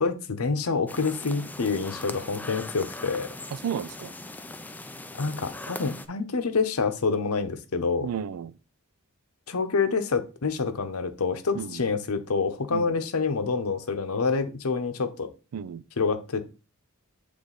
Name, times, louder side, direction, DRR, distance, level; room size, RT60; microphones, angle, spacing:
voice 1, 0.0-3.3 5.1-8.1 9.5-15.3 16.0-16.6, left 4 dB, 70° left, 0.8 m, -27 dB
sound 1, 0.9-6.1, left 2 dB, 10° left, 0.3 m, -40 dB
voice 2, 3.6-4.1 8.0-8.5 11.6-11.8 12.7-12.9 15.5-15.8, right 8 dB, 90° right, 0.4 m, -32 dB
8.1 x 3.3 x 3.9 m
head